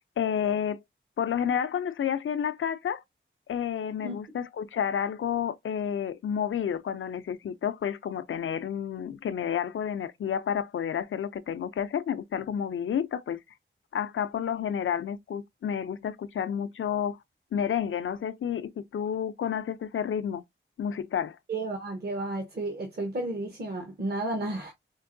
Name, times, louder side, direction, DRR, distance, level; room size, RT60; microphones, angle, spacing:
voice 1, 0.2-0.8 1.2-3.0 3.5-13.4 13.9-17.2 17.5-20.4 20.8-21.4, left 8 dB, 80° left, 0.5 m, -30 dB
voice 2, 21.5-24.7, right 2 dB, 50° right, 1.0 m, -32 dB
4.5 x 2.5 x 2.6 m
wide cardioid pair, 75°, 21 cm